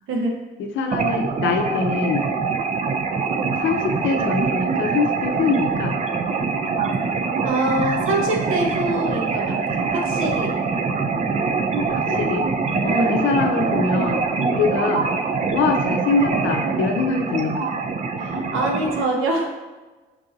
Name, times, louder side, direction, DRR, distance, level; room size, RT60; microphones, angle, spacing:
voice 1, 0.7-2.3 3.5-5.9 11.9-12.5 12.8-15.1 15.5-17.7, left 4 dB, 75° left, 4 dB, 0.6 m, -23 dB
sound 1, 0.9-19.0, right 4 dB, 35° right, 0.4 m, -24 dB
voice 2, 7.4-10.6 12.8-13.3 18.2-19.6, right 1 dB, 85° right, 1 dB, 0.9 m, -24 dB
4.6 x 2.6 x 3.9 m, 1.2 s
cardioid pair, 90°, 20 cm